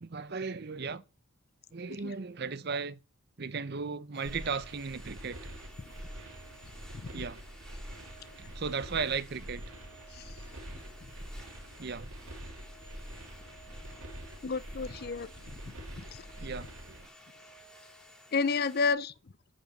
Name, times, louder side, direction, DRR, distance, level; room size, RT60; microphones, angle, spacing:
voice 1, 0.0-1.0 1.7-3.0 3.4-5.4 7.1-7.4 8.4-9.6 11.8-12.1 16.4-17.0, right 5 dB, 50° right, 0.7 m, -36 dB
sound 1, 4.1-18.9, equal, ahead, 2.6 m, -55 dB
sound 2, 4.2-17.1, right 1 dB, 90° right, 4.5 m, -45 dB
voice 2, 14.4-15.3 16.0-16.2 18.3-19.1, left 4 dB, 45° left, 0.5 m, -30 dB
10.0 x 4.9 x 7.7 m
head